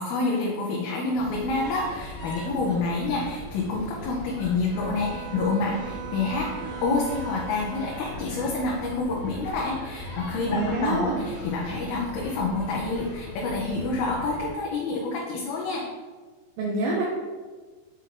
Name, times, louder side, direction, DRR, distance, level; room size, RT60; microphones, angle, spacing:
voice 1, 0.0-6.5 6.8-15.9, left 3 dB, 80° left, -2 dB, 2.6 m, -28 dB
sound 1, 1.1-14.5, left 1 dB, 55° left, 0.9 m, -39 dB
Bowed string instrument, 4.7-8.3, right 8 dB, 45° right, 2.1 m, -39 dB
voice 2, 10.5-11.2 16.6-17.0, right 2 dB, 75° right, -3 dB, 2.3 m, -26 dB
6.9 x 4.9 x 3.7 m, 1.4 s
omnidirectional pair, 4.4 m